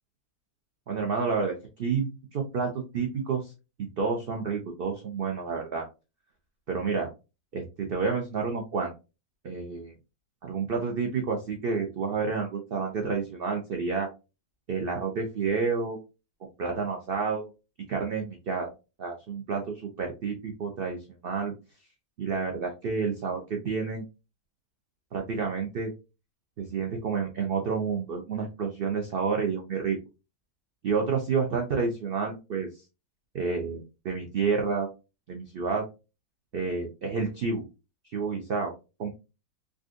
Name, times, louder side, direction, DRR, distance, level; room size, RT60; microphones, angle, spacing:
voice 1, 0.9-3.5 3.8-5.8 6.7-7.1 7.5-8.9 9.4-9.9 10.4-14.1 14.7-16.0 16.6-17.5 17.9-18.7 19.0-21.0 21.2-21.5 22.2-24.0 25.1-25.9 26.6-30.0 30.8-32.7 33.3-34.9 35.3-35.9 36.5-37.6 38.1-38.7 39.0-39.1, right 5 dB, 80° right, 2 dB, 0.5 m, -29 dB
3.7 x 2.4 x 2.5 m, 0.29 s
omnidirectional pair, 1.7 m